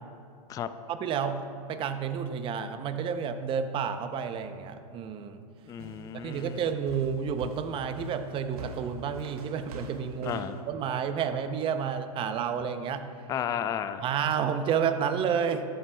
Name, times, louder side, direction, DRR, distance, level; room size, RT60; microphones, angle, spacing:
voice 1, 0.9-5.4 6.2-13.1 14.0-15.6, right 7 dB, 25° right, 9 dB, 0.6 m, -30 dB
voice 2, 5.7-6.6 10.2-10.6 13.3-14.0, left 9 dB, 20° left, 11 dB, 0.3 m, -33 dB
sound 1, 5.8-10.6, right 3 dB, 70° right, 1.1 m, -43 dB
13.5 x 11.0 x 2.3 m, 2.3 s
hypercardioid pair, 130°, 20 cm